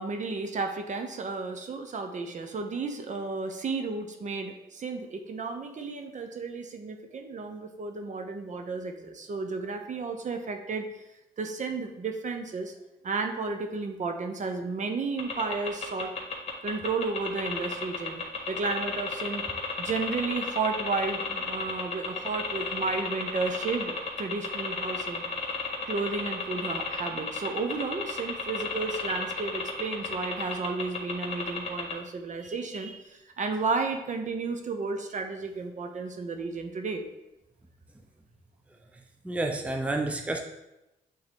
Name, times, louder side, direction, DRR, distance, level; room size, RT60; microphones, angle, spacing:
voice 1, 0.0-10.9 11.4-12.7 13.0-16.1 16.6-19.4 19.8-25.3 25.9-37.0, right 4 dB, 45° right, 5 dB, 0.9 m, -33 dB
sound 1, 15.2-31.9, left 5 dB, 40° left, 1.8 m, -32 dB
voice 2, 39.2-40.4, right 2 dB, 10° right, 3 dB, 0.6 m, -29 dB
8.0 x 3.8 x 3.6 m, 0.91 s
cardioid pair, 100°, 17 cm